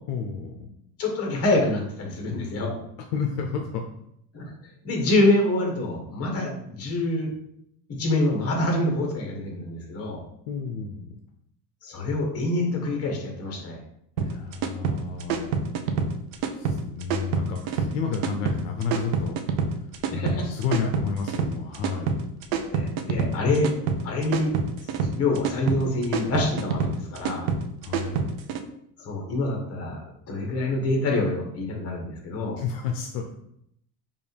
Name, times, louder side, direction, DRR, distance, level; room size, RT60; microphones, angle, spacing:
voice 1, 0.1-0.7 3.1-3.8 10.5-11.2 14.2-15.6 16.5-19.4 20.1-22.2 27.8-28.3 32.6-33.3, left 5 dB, 70° left, 3 dB, 0.6 m, -31 dB
voice 2, 1.0-2.7 4.3-4.5 4.8-7.3 8.0-10.2 11.8-13.8 20.1-20.5 22.7-23.7 24.0-24.5 25.2-27.5 29.0-30.0 30.3-32.6, left 2 dB, 35° left, 1 dB, 1.3 m, -26 dB
sound 1, 14.2-28.6, right 5 dB, 75° right, 0.6 m, -27 dB
5.2 x 2.5 x 3.3 m, 0.73 s
cardioid pair, 135°, 43 cm